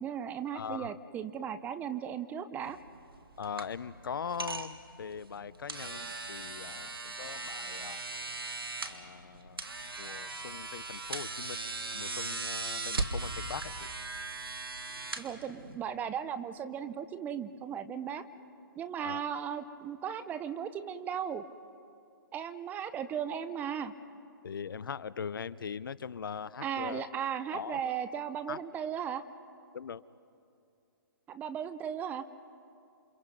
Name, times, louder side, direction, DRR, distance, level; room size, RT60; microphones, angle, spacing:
voice 1, 0.0-2.8 15.2-18.2 18.8-21.4 22.3-23.9 26.6-29.2 31.3-32.2, right 8 dB, 15° right, 12 dB, 0.6 m, -36 dB
voice 2, 0.5-1.0 3.4-8.0 8.8-9.7 10.0-11.6 11.9-13.9 19.0-19.3 24.4-27.1 27.5-27.9 28.5-28.6 29.7-30.0, left 7 dB, 70° left, 19 dB, 0.6 m, -41 dB
sound 1, 2.6-15.9, right 3 dB, 90° right, 1.8 m, -39 dB
28.5 x 25.0 x 5.3 m, 2.5 s
hypercardioid pair, 145°, 12 cm